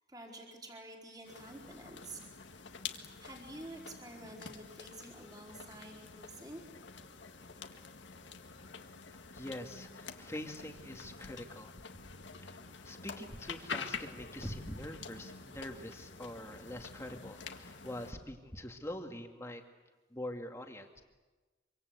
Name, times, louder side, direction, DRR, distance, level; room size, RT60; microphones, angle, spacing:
voice 1, 0.1-2.3 3.2-6.6, right 1 dB, 20° right, 0 dB, 4.3 m, -49 dB
sound 1, 1.2-18.1, left 5 dB, 75° left, 1.8 m, -47 dB
voice 2, 9.1-11.7 12.4-12.6 12.8-19.6 20.1-21.0, left 1 dB, 15° left, 4 dB, 2.1 m, -44 dB
26.0 x 25.0 x 8.1 m, 1.2 s
head